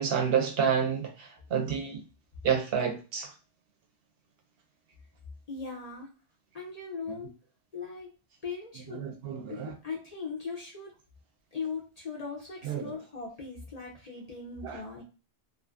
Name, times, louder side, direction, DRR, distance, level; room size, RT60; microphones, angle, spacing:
voice 1, 0.0-2.0 2.4-3.3 8.9-9.7 12.6-12.9 14.6-14.8, right 7 dB, 65° right, 0.7 m, -29 dB
voice 2, 5.5-6.1 6.5-7.4 7.7-8.1 8.4-9.0 9.5-10.9 11.5-15.0, left 5 dB, 50° left, 0.5 m, -39 dB
2.5 x 2.4 x 2.3 m
omnidirectional pair, 1.1 m